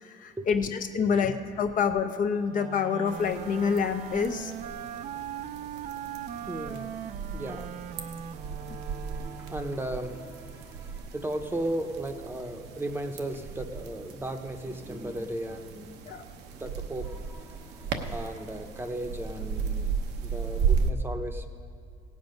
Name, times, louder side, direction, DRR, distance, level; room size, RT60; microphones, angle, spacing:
voice 1, 0.0-4.5 16.1-16.2, left 6 dB, 50° left, 6 dB, 0.8 m, -27 dB
Wind instrument woodwind instrument, 2.5-10.0, right 9 dB, 50° right, 0.4 m, -40 dB
sound 1, 3.1-20.9, right 6 dB, 80° right, 0.9 m, -35 dB
voice 2, 6.4-6.9 7.3-7.8 8.3-16.2 16.5-19.9 20.2-21.5, right 1 dB, 15° right, 6 dB, 0.8 m, -36 dB
17.0 x 7.6 x 5.3 m, 2.2 s
cardioid pair, 110°, 17 cm